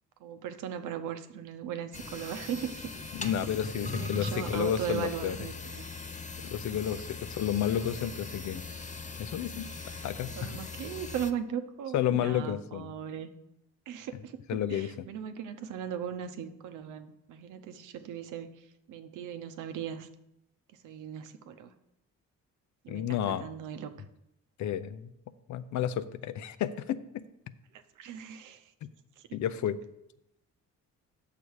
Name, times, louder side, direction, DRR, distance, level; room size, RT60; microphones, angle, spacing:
voice 1, 0.2-2.9 3.2-3.3 3.8-5.8 7.9-8.1 8.5-8.7 10.4-13.3 13.9-14.4 14.7-20.1 20.8-21.7 22.8-23.9 27.7-28.7 29.2-29.3, right 8 dB, 85° right, 9 dB, 0.8 m, -38 dB
sound 1, 1.9-11.3, left 4 dB, 25° left, 0.7 m, -40 dB
voice 2, 3.1-5.4 6.4-8.6 9.2-9.7 10.0-10.5 11.9-12.9 14.5-15.1 22.9-23.4 24.6-25.1 25.5-27.2 28.8-28.9 29.3-29.8, left 10 dB, 70° left, 13 dB, 0.6 m, -31 dB
8.4 x 6.8 x 4.7 m, 0.85 s
cardioid pair, 90°, 30 cm